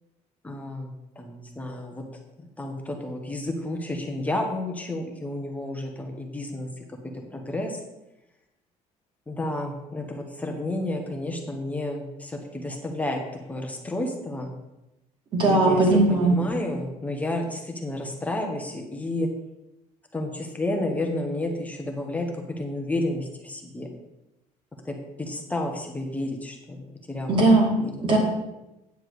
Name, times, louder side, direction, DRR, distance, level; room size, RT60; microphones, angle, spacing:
voice 1, 0.4-2.0 2.4-6.7 7.3-7.8 9.3-13.2 13.5-14.5 15.4-19.3 20.1-23.9 24.8-27.4 27.8-28.1, left 1 dB, 10° left, 2 dB, 1.0 m, -31 dB
voice 2, 15.3-16.4 27.3-27.7 28.0-28.2, right 2 dB, 35° right, 0 dB, 2.3 m, -18 dB
9.3 x 7.3 x 4.8 m, 0.95 s
cardioid pair, 165°, 14 cm